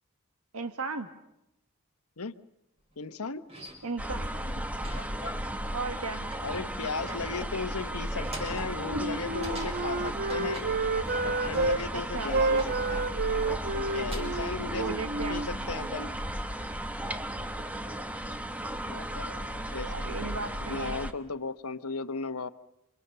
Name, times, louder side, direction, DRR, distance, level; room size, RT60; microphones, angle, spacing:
voice 1, 0.5-1.1 3.8-4.3 5.7-6.3 8.9-9.0 11.9-12.4 14.6-15.4 19.7-21.0, right 4 dB, 80° right, 8 dB, 1.5 m, -36 dB
sound 1, 2.9-3.0 3.5-4.1 4.8-5.6 5.9-11.2 11.5-13.0 13.9-14.5 15.2-15.6, right 1 dB, 30° right, 5.9 m, -47 dB
voice 2, 3.0-3.4 6.4-10.7 11.2-13.1 13.7-15.0 15.3-16.1 18.9-19.9 20.7-22.5, left 4 dB, 85° left, 12 dB, 1.1 m, -36 dB
sound 2, 4.0-21.1, right 1 dB, 5° right, 1.2 m, -35 dB
Wind instrument woodwind instrument, 8.8-11.8 12.3-16.1, right 3 dB, 45° right, 1.1 m, -30 dB
29.0 x 25.5 x 6.9 m, 0.86 s
head